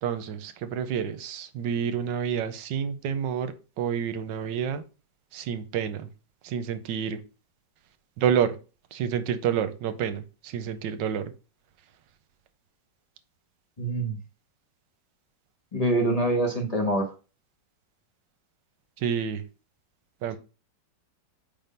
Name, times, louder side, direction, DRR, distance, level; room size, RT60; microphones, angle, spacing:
voice 1, 0.0-4.8 5.3-6.1 6.4-7.2 8.2-8.6 8.9-11.3 19.0-19.4 20.2-20.4, right 8 dB, 85° right, 11 dB, 1.4 m, -29 dB
voice 2, 13.8-14.2 15.7-17.1, right 1 dB, 25° left, 0 dB, 1.1 m, -25 dB
5.2 x 3.7 x 5.4 m, 0.32 s
omnidirectional pair, 1.9 m